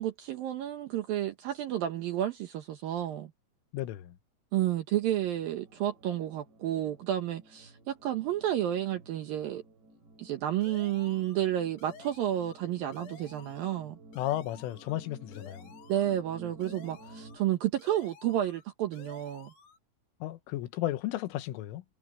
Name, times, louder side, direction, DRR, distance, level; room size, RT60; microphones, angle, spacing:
voice 1, 0.0-3.3 4.5-9.6 10.2-14.0 15.9-19.5, right 12 dB, 80° right, 2.1 m, -31 dB
voice 2, 3.7-4.2 14.2-15.7 20.2-21.8, left 14 dB, 80° left, 3.7 m, -34 dB
sound 1, 5.0-17.4, right 1 dB, 60° right, 8.0 m, -54 dB
sound 2, 10.6-11.5 11.8-12.6 12.9-13.8 14.1-15.0 15.3-16.2 16.6-17.5 17.8-18.6 18.9-19.8, left 5 dB, 55° left, 5.9 m, -53 dB
omnidirectional pair, 5.8 m